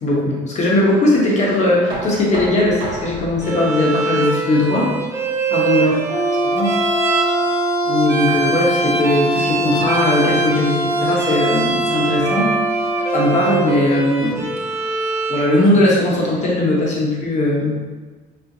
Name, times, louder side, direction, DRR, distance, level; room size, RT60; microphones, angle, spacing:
voice 1, 0.0-4.9 5.5-5.9 6.4-6.8 7.8-12.6 13.1-14.4 15.3-17.8, left 1 dB, 45° left, -3 dB, 1.0 m, -18 dB
Knock, 1.9-7.7, right 2 dB, 75° right, 1.0 m, -34 dB
Bowed string instrument, 3.4-15.6, right 3 dB, 15° right, 0.4 m, -24 dB
Brass instrument, 6.1-13.8, right 1 dB, 70° left, 1.3 m, -22 dB
4.3 x 2.1 x 2.7 m, 1.4 s
cardioid pair, 110°, 17 cm